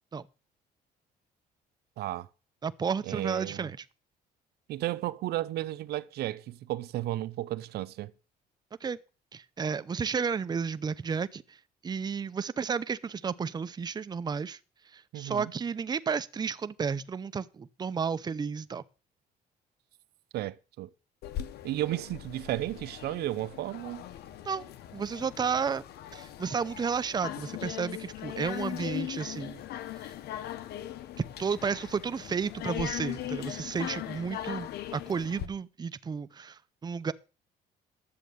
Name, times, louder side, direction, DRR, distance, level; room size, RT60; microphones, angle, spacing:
voice 1, 2.0-2.3 3.1-3.7 4.7-8.1 15.1-15.5 20.3-20.9 21.6-24.0, right 15 dB, 70° right, 0.7 m, -33 dB
voice 2, 2.6-3.8 8.8-9.0 9.3-11.6 11.8-14.6 14.9-18.8 24.5-25.8 26.1-29.6 31.2-37.1, right 6 dB, 25° right, 0.7 m, -32 dB
sound 1, 21.2-35.5, left 12 dB, 75° left, 1.3 m, -39 dB
11.5 x 7.6 x 6.8 m
cardioid pair, 110°, 17 cm